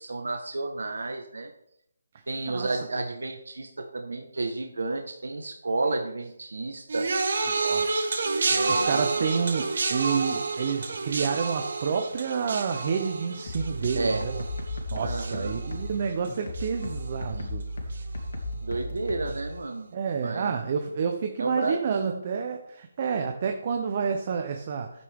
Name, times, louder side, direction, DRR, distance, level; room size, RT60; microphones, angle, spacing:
voice 1, 0.0-1.5 2.3-7.1 8.6-9.3 13.9-14.2 15.0-15.6 17.4-17.5 18.6-19.9 20.2-20.6 21.4-22.2, right 2 dB, 85° right, 4 dB, 1.3 m, -31 dB
voice 2, 2.5-2.8 7.6-14.4 14.9-17.6 19.9-24.9, right 6 dB, 25° right, 5 dB, 0.7 m, -29 dB
sound 1, 6.9-16.3 16.5-17.1 17.9-18.0, right 3 dB, 45° right, 1.3 m, -29 dB
sound 2, 13.5-19.5, left 1 dB, 55° left, 2.8 m, -35 dB
11.5 x 9.2 x 3.6 m, 0.76 s
hypercardioid pair, 175°, 0 cm